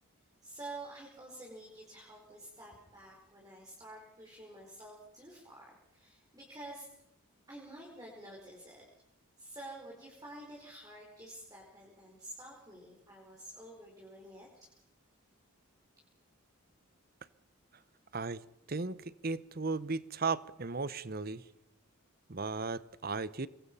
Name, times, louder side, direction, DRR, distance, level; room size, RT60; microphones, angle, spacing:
voice 1, 0.4-6.9 7.5-8.9 9.4-14.7, right 1 dB, 15° right, -3 dB, 5.0 m, -49 dB
voice 2, 19.2-21.4 22.3-23.5, right 4 dB, 45° right, 17 dB, 0.8 m, -35 dB
27.0 x 22.5 x 5.6 m, 0.80 s
head